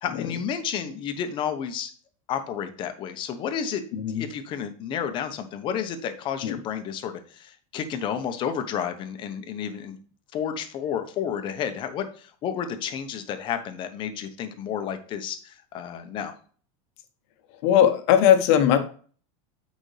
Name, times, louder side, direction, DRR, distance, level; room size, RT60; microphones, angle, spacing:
voice 1, 0.0-1.9 2.3-10.0 10.3-16.3, left 8 dB, 30° left, 8 dB, 0.9 m, -31 dB
voice 2, 3.9-4.2 6.4-6.5 17.6-18.8, left 10 dB, 55° left, 8 dB, 1.1 m, -19 dB
9.0 x 5.2 x 3.3 m, 0.43 s
supercardioid pair, 170°, 16 cm